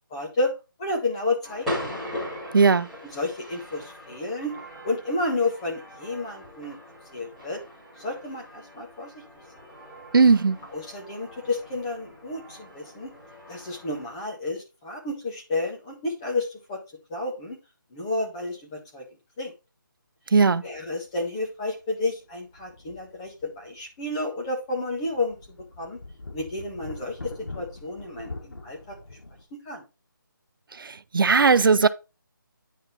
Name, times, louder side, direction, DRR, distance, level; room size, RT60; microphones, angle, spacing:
voice 1, 0.1-0.5 0.8-2.1 3.0-4.5 4.8-6.8 7.1-7.6 8.0-9.2 10.7-13.1 13.5-16.8 17.1-17.6 17.9-19.0 19.4-19.5 20.6-26.0 26.3-29.0 29.6-29.8, left 2 dB, 15° left, 1.6 m, -31 dB
sound 1, 1.4-14.1, left 1 dB, ahead, 2.7 m, -40 dB
voice 2, 2.5-2.9 10.1-10.6 20.3-20.6 30.8-31.9, right 5 dB, 75° right, 0.5 m, -18 dB
sound 2, 20.7-20.9 21.3-21.4 22.3-23.7 24.1-24.2 24.7-29.4, left 2 dB, 85° left, 1.9 m, -43 dB
9.2 x 4.1 x 4.2 m
figure-of-eight pair, 170°, 11 cm